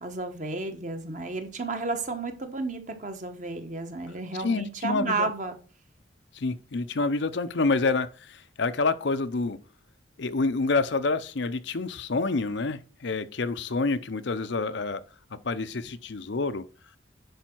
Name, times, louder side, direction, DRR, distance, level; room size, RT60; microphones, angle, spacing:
voice 1, 0.0-5.6, right 3 dB, 40° right, 1.2 m, -32 dB
voice 2, 4.4-5.3 6.3-9.6 10.2-15.0 15.3-16.7, left 3 dB, 65° left, 0.6 m, -28 dB
10.0 x 5.1 x 4.5 m
head